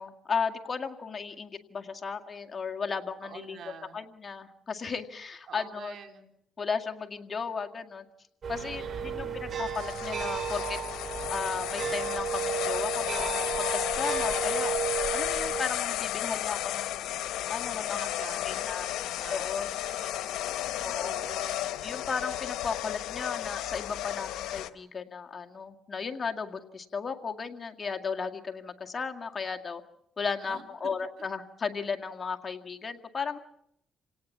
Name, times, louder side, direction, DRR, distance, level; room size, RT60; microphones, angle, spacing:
voice 1, 0.0-5.9 6.6-8.1 8.5-10.8 11.3-13.3 13.6-14.8 15.1-17.0 17.5-18.1 18.4-18.9 19.3-19.7 20.8-21.1 21.8-29.8 30.2-33.4, left 5 dB, 35° left, 4 dB, 2.0 m, -35 dB
voice 2, 3.2-4.0 5.5-6.3 8.6-9.4 17.9-21.7 30.4-30.6, right 7 dB, 65° right, 5 dB, 3.5 m, -47 dB
sound 1, 8.4-15.6, right 7 dB, 50° right, 3.6 m, -33 dB
sound 2, 9.7-24.7, left 13 dB, 85° left, 1.0 m, -33 dB
29.0 x 18.0 x 7.3 m, 0.76 s
cardioid pair, 90°, 0 cm